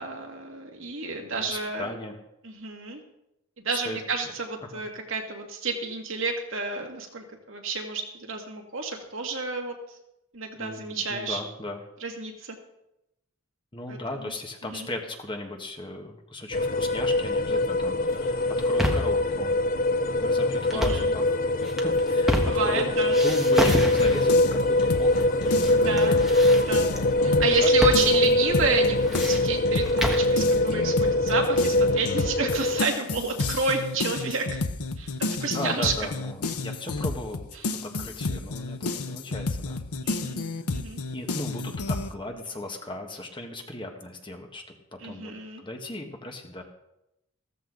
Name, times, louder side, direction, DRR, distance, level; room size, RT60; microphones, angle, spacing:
voice 1, 0.0-2.0 2.4-3.0 3.6-9.8 10.3-11.4 12.0-12.5 13.9-14.3 14.7-14.9 20.7-21.1 22.3-23.2 25.7-26.2 26.6-26.9 27.2-34.6 35.0-35.9 37.6-37.7 40.0-40.4 40.7-41.0 45.0-45.6, right 4 dB, 55° right, 2 dB, 2.1 m, -30 dB
voice 2, 1.4-2.2 3.8-4.0 4.6-4.7 10.6-11.8 13.7-19.6 20.1-21.3 21.8-22.8 23.2-26.6 27.1-28.2 35.5-39.8 40.2-40.5 41.1-44.7 45.0-45.3 45.6-46.6, left 1 dB, 20° left, 3 dB, 1.4 m, -37 dB
sound 1, 16.5-32.8, left 2 dB, 40° left, 0.6 m, -23 dB
sound 2, 18.4-19.2 20.6-21.1 21.6-22.8 23.1-24.4 25.1-25.7 26.0-27.0 27.8-28.0 28.3-28.4 28.8-30.3, equal, ahead, 1.4 m, -28 dB
sound 3, 23.7-27.6 27.9-42.1, left 3 dB, 85° left, 0.9 m, -31 dB
15.0 x 14.0 x 3.9 m, 0.87 s
head